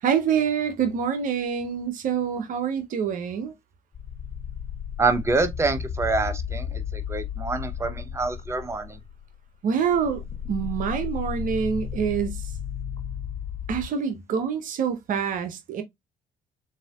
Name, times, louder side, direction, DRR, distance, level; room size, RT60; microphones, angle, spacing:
voice 1, 0.0-3.5 9.6-10.2 10.5-12.5 13.7-15.8, right 7 dB, 50° right, 0.8 m, -26 dB
sound 1, 3.9-9.5 9.9-13.9, left 8 dB, 35° left, 1.0 m, -34 dB
voice 2, 5.0-9.0, right 3 dB, 15° right, 0.8 m, -26 dB
7.4 x 2.7 x 2.4 m
figure-of-eight pair, 50°, 18 cm